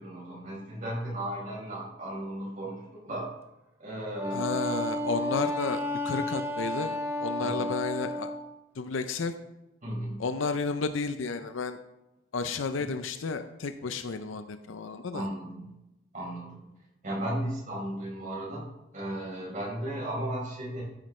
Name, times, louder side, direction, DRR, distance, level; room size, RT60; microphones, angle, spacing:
voice 1, 0.0-3.3 3.8-4.6 7.4-7.7 9.8-10.2 15.1-15.7 16.1-16.7 17.0-18.6 18.9-20.8, right 1 dB, 45° right, -4 dB, 4.3 m, -35 dB
Wind instrument woodwind instrument, 4.2-8.4, left 1 dB, 15° right, 0.9 m, -32 dB
voice 2, 4.3-8.3 8.8-9.3 10.2-11.8 12.3-15.3, left 4 dB, 90° left, 9 dB, 0.6 m, -32 dB
13.0 x 8.9 x 3.2 m, 0.95 s
head